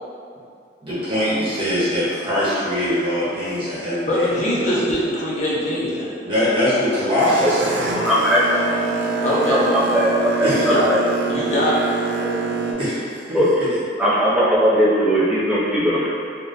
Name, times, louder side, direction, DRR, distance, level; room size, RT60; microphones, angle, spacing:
voice 1, 0.8-4.8 6.2-7.9 10.4-10.7 12.8-13.7, equal, 30° right, -11 dB, 1.0 m, -22 dB
voice 2, 4.1-6.2 9.2-9.7 10.5-10.9 11.3-11.9, left 1 dB, 40° left, -7 dB, 0.6 m, -22 dB
Boat Water vehicle, 6.5-12.7, right 4 dB, 85° right, 0.4 m, -25 dB
voice 3, 7.9-8.4 9.7-10.1 10.4-10.5 10.9-11.0 13.3-13.5 14.0-16.1, equal, 5° right, -9 dB, 0.6 m, -18 dB
3.6 x 2.2 x 2.6 m, 2.3 s
head